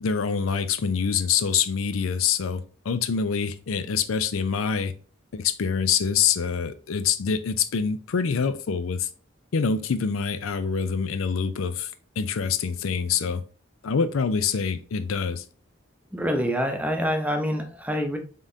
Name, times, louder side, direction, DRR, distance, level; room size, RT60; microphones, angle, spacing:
voice 1, 0.0-4.9 5.3-9.1 9.5-11.9 12.2-13.4 13.8-15.4, left 6 dB, 90° left, 0.5 m, -25 dB
voice 2, 16.1-18.2, equal, 5° right, 0.6 m, -26 dB
5.3 x 3.7 x 2.7 m
head